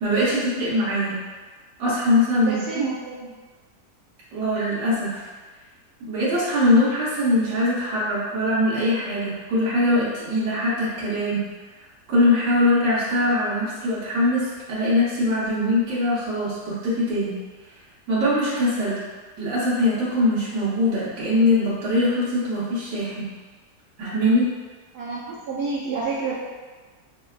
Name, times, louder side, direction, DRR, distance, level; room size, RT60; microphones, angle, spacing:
voice 1, 0.0-1.2 1.8-2.6 4.3-5.3 6.1-11.4 12.1-17.3 18.1-19.0 19.4-23.2 24.0-24.5, left 1 dB, 90° right, -10 dB, 1.6 m, -22 dB
voice 2, 2.3-3.3 24.9-26.3, right 4 dB, 70° right, -6 dB, 1.0 m, -29 dB
5.9 x 2.2 x 2.3 m, 1.3 s
omnidirectional pair, 1.8 m